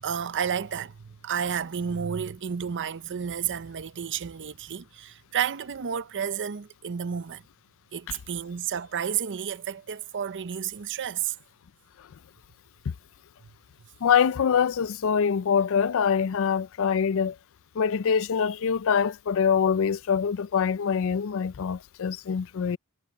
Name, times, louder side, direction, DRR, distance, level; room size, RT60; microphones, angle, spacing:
voice 1, 0.0-7.4 7.9-11.4, right 8 dB, 55° right, 0.6 m, -31 dB
voice 2, 14.0-17.4 17.8-22.8, left 7 dB, 65° left, 0.4 m, -24 dB
head